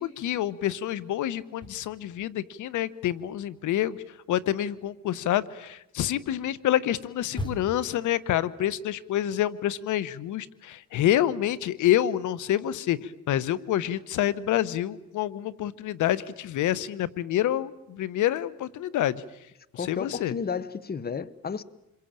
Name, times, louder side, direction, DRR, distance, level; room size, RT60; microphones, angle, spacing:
voice 1, 0.0-4.0 4.3-19.2 19.7-20.3, left 12 dB, 80° left, 1.0 m, -27 dB
sound 1, 1.4-2.6 2.9-8.0, left 1 dB, 15° left, 4.3 m, -41 dB
voice 2, 19.7-21.6, left 6 dB, 30° left, 1.1 m, -32 dB
27.5 x 23.0 x 8.9 m
cardioid pair, 90°, 30 cm